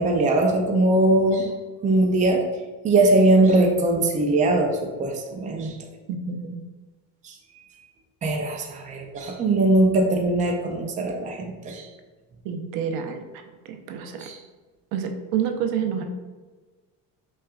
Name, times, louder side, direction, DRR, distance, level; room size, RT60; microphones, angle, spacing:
voice 1, 0.0-1.5 1.8-2.4 2.8-5.8 7.2-7.3 8.2-11.9 14.2-14.4, right 2 dB, 20° right, 2 dB, 0.4 m, -21 dB
voice 2, 6.1-6.6 12.4-13.3 13.6-14.2 14.9-16.0, right 7 dB, 80° right, 5 dB, 0.6 m, -28 dB
5.5 x 2.4 x 2.4 m, 1.3 s
cardioid pair, 145°, 36 cm